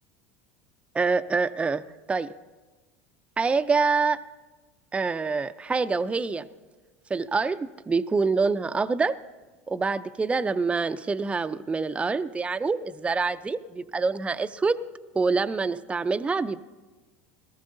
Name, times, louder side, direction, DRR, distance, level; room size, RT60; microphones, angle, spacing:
voice 1, 0.9-1.8 2.1-2.3 3.4-4.2 4.9-6.5 7.1-9.2 9.7-14.8 15.1-16.6, right 4 dB, 15° right, 11 dB, 0.4 m, -26 dB
18.5 x 13.5 x 2.6 m, 1.2 s
hypercardioid pair, 85°, 7 cm